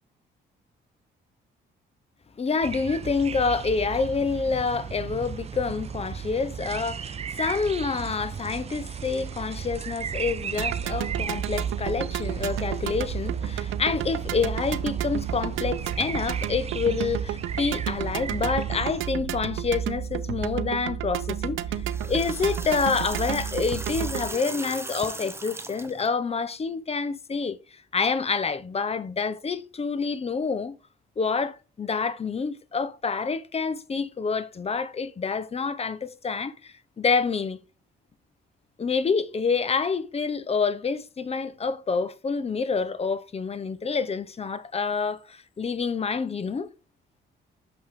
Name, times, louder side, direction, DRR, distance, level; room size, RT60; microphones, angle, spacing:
voice 1, 2.4-21.8 22.1-30.8 31.2-37.6 38.8-46.7, left 5 dB, 30° left, 0.8 m, -27 dB
sound 1, 2.6-19.1, right 7 dB, 30° right, 0.4 m, -36 dB
sound 2, 10.6-24.3, right 10 dB, 75° right, 0.6 m, -31 dB
sound 3, 21.7-26.1, right 2 dB, 10° right, 0.8 m, -38 dB
6.5 x 5.5 x 3.6 m
cardioid pair, 90°, 20 cm